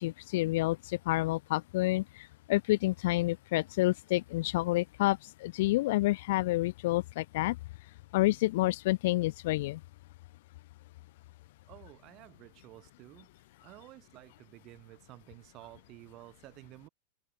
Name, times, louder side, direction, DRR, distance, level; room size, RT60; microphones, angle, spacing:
voice 1, 0.0-7.6 8.1-9.8, left 18 dB, 50° left, 0.4 m, -29 dB
voice 2, 11.7-13.3 13.6-16.9, right 18 dB, 40° right, 2.8 m, -52 dB
figure-of-eight pair, 90°, 0 cm